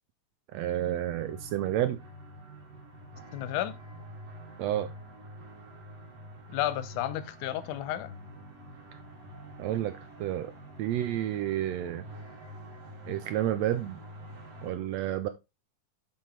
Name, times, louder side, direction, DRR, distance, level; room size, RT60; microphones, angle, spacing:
voice 1, 0.5-2.0 4.6-4.9 9.6-9.9 10.2-10.5 10.8-12.0 13.1-14.0 14.6-15.3, right 12 dB, 75° right, 1.6 m, -30 dB
sound 1, 1.2-14.7, equal, 55° right, 2.8 m, -47 dB
voice 2, 3.3-3.8 6.5-8.2, left 13 dB, 85° left, 2.2 m, -32 dB
7.3 x 5.9 x 3.3 m
omnidirectional pair, 3.5 m